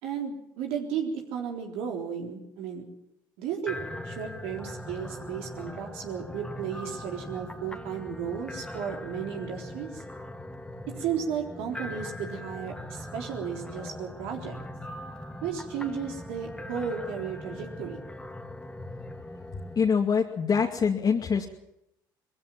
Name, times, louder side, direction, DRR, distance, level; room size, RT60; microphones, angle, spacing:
voice 1, 0.0-2.8 3.4-3.8 4.0-10.0 11.0-14.6 15.4-18.0, right 7 dB, 75° right, 2 dB, 4.0 m, -34 dB
sound 1, 3.7-19.9, left 1 dB, 10° left, 2.1 m, -40 dB
voice 2, 19.8-21.5, left 6 dB, 40° left, 0 dB, 2.2 m, -24 dB
22.0 x 15.5 x 7.6 m, 0.82 s
hypercardioid pair, 60°, 10 cm